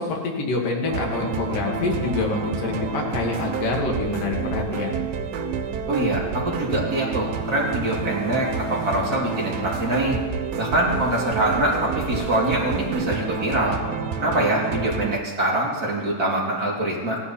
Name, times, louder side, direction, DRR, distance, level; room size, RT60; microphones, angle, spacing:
voice 1, 0.0-5.1, left 3 dB, 70° left, 0 dB, 3.4 m, -26 dB
sound 1, 0.9-15.2, right 6 dB, 75° right, 1.5 m, -29 dB
sound 2, 1.0-13.6, left 2 dB, 40° left, 1.8 m, -42 dB
voice 2, 5.9-10.2 10.5-13.8 14.2-17.2, right 1 dB, 30° right, -4 dB, 2.8 m, -24 dB
16.5 x 11.5 x 4.3 m, 1.4 s
omnidirectional pair, 4.0 m